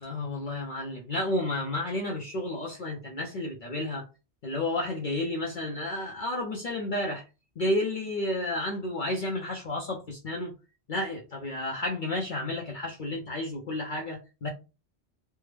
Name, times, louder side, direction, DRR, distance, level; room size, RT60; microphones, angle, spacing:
voice 1, 0.0-4.0 4.4-7.2 7.6-10.5 10.9-14.5, left 1 dB, 55° left, 0.7 m, -31 dB
3.4 x 2.0 x 3.1 m
omnidirectional pair, 1.2 m